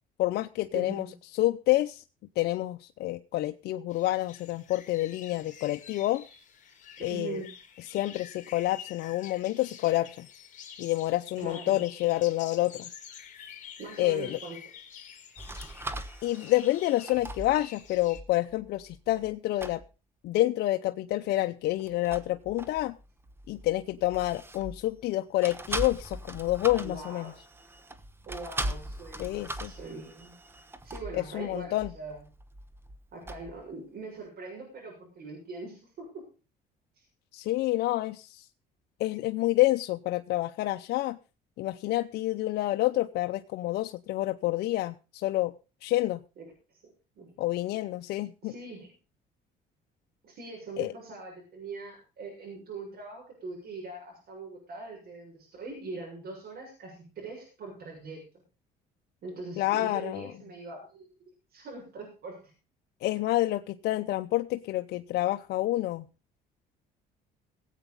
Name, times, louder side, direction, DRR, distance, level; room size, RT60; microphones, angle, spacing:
voice 1, 0.2-1.1 1.4-2.0 2.4-6.2 7.0-7.4 7.9-10.3 10.8-12.9 14.0-14.4 16.2-19.8 20.2-22.9 23.5-27.3 29.2-29.7 31.1-31.9 37.3-38.5 39.0-41.2 41.6-45.5 45.8-46.2 47.4-48.5 50.8-50.9 59.6-60.3 63.0-66.1, left 16 dB, 75° left, 7 dB, 0.7 m, -28 dB
voice 2, 0.7-1.1 7.1-7.5 11.4-11.8 13.8-14.6 26.8-27.3 28.2-30.4 30.8-32.2 33.1-36.2 37.0-37.1 46.4-46.5 47.2-47.3 48.4-48.9 50.2-58.3 59.2-61.1 61.5-62.5, right 3 dB, 65° right, -1 dB, 6.8 m, -42 dB
sound 1, 3.9-18.2, left 8 dB, 50° left, 3.2 m, -48 dB
sound 2, 15.4-19.3 19.6-19.9 21.8-25.1 25.4-33.7, right 1 dB, 15° right, 1.1 m, -40 dB
17.5 x 8.2 x 5.4 m, 0.34 s
cardioid pair, 110°, 17 cm